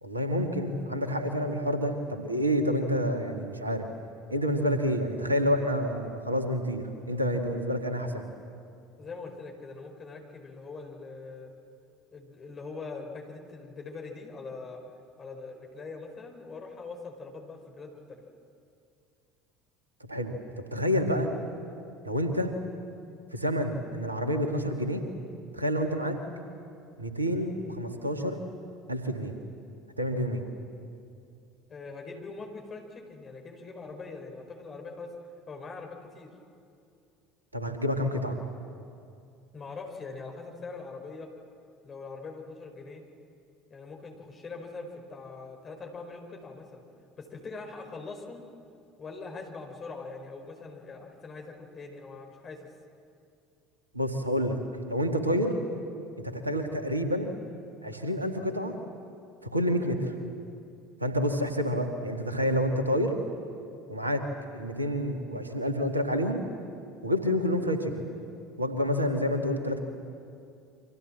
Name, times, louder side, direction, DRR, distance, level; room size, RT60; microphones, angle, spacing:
voice 1, 0.0-3.9 4.3-8.2 20.0-20.4 20.7-21.3 22.0-22.5 23.3-25.0 25.5-26.2 27.0-28.4 28.9-29.4 30.0-30.4 37.5-38.4 53.9-55.5 56.2-57.3 57.8-58.7 59.4-60.1 61.0-63.2 63.9-64.3 64.5-66.4 67.0-68.0 68.6-69.8, equal, 85° right, 6 dB, 2.0 m, -28 dB
voice 2, 9.0-11.5 12.1-14.8 15.2-18.2 31.7-35.1 35.5-36.3 39.5-41.3 41.8-43.0 43.7-46.8 47.2-48.4 49.0-52.7, left 4 dB, 30° left, 3 dB, 5.0 m, -42 dB
29.0 x 25.0 x 7.6 m, 2.5 s
figure-of-eight pair, 65°, 0 cm